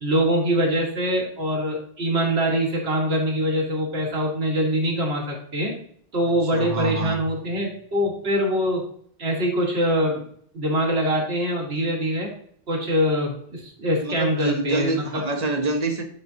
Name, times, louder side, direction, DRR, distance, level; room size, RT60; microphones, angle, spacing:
voice 1, 0.0-5.8 6.1-8.9 9.2-10.2 10.5-12.3 12.7-15.2, equal, 85° right, -1 dB, 1.7 m, -23 dB
voice 2, 6.2-7.2 14.0-16.0, right 2 dB, 45° right, 5 dB, 0.8 m, -26 dB
9.4 x 3.9 x 2.7 m, 0.62 s
omnidirectional pair, 1.0 m